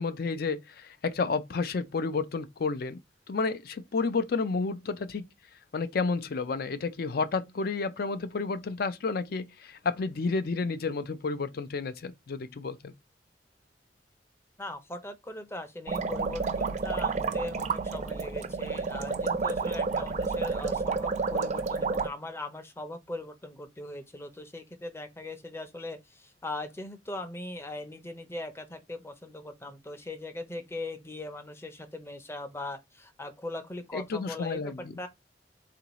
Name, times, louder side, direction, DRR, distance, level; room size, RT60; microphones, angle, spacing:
voice 1, 0.0-3.0 3.3-5.3 5.7-12.9 33.9-35.0, left 4 dB, 60° left, 0.4 m, -31 dB
voice 2, 14.6-35.1, left 2 dB, 15° left, 0.6 m, -40 dB
sound 1, 15.9-22.1, right 4 dB, 40° right, 0.4 m, -30 dB
3.8 x 2.6 x 2.9 m
head